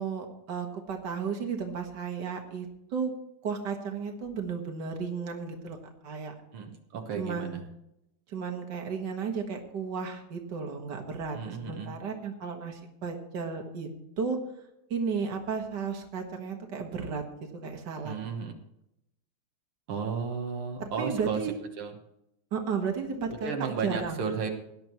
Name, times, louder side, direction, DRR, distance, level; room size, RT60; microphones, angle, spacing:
voice 1, 0.0-3.1 3.4-5.8 6.0-6.3 7.2-7.6 8.3-13.9 14.2-14.4 14.9-17.2 17.6-18.1 20.8-21.5 22.5-23.5 23.8-24.2, right 6 dB, 55° right, 3 dB, 2.2 m, -33 dB
voice 2, 6.5-7.6 11.3-11.9 18.0-18.6 19.9-21.4 21.8-21.9 23.4-24.5, right 5 dB, 85° right, 3 dB, 2.2 m, -33 dB
18.0 x 11.0 x 3.1 m, 0.84 s
omnidirectional pair, 2.3 m